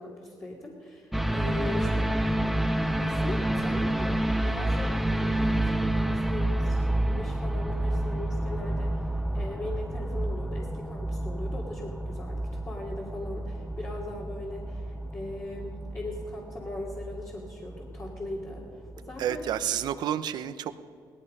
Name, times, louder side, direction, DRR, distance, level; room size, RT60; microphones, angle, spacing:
voice 1, 0.0-2.1 3.0-19.5, left 2 dB, 35° left, -4 dB, 2.6 m, -39 dB
sound 1, 1.1-19.5 19.9-20.0, right 1 dB, ahead, 0.6 m, -29 dB
voice 2, 19.2-20.7, right 10 dB, 70° right, 12 dB, 0.8 m, -30 dB
17.5 x 13.5 x 5.5 m, 2.5 s
cardioid pair, 100°, 7 cm